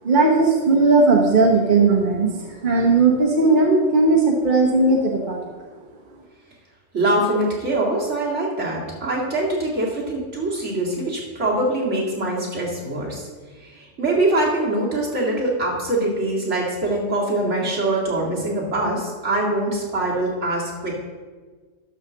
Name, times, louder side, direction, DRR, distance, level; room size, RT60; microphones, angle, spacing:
voice 1, 0.0-5.4, right 3 dB, 40° right, -1 dB, 1.1 m, -17 dB
voice 2, 6.9-13.3 13.6-21.0, right 2 dB, 65° right, -4 dB, 2.5 m, -23 dB
12.0 x 4.1 x 6.2 m, 1.4 s
omnidirectional pair, 1.3 m